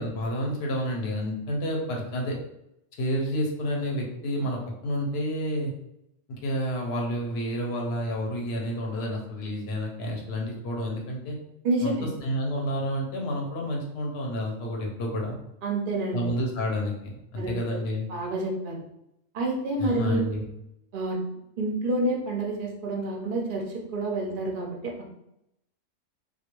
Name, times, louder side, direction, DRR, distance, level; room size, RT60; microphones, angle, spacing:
voice 1, 0.0-2.4 3.0-5.7 6.3-11.4 11.8-15.4 16.1-16.9 17.3-18.1 19.8-20.4, equal, 60° left, -1 dB, 0.8 m, -30 dB
voice 2, 11.6-12.1 15.6-16.3 17.4-17.5 18.1-18.8 19.3-20.4 20.9-21.2 21.6-24.9, right 2 dB, 55° right, 0 dB, 0.6 m, -28 dB
2.3 x 2.2 x 2.9 m, 0.82 s
omnidirectional pair, 1.3 m